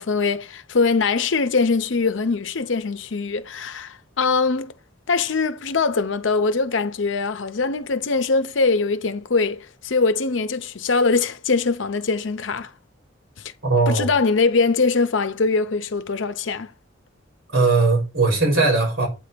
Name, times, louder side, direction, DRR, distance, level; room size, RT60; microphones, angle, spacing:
voice 1, 0.0-4.7 5.1-12.7 13.9-16.7, left 4 dB, 65° left, 0.7 m, -22 dB
voice 2, 13.6-14.1 17.5-19.1, right 3 dB, 85° right, 3.7 m, -19 dB
8.8 x 3.4 x 6.6 m
head